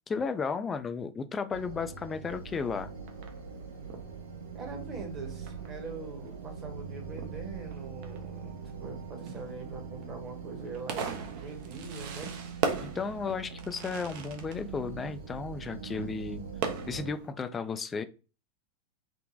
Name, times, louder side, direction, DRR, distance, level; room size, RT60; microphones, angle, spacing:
voice 1, 0.1-2.9 12.8-16.4 16.9-18.0, left 5 dB, 20° left, 11 dB, 0.3 m, -34 dB
sound 1, 1.5-17.1, right 6 dB, 65° right, 1.0 m, -42 dB
Fireworks, 2.3-17.3, right 6 dB, 45° right, 0.6 m, -41 dB
voice 2, 4.5-12.3, right 3 dB, 30° right, 2 dB, 1.1 m, -43 dB
3.7 x 2.2 x 2.6 m, 0.33 s
figure-of-eight pair, 90°, 0 cm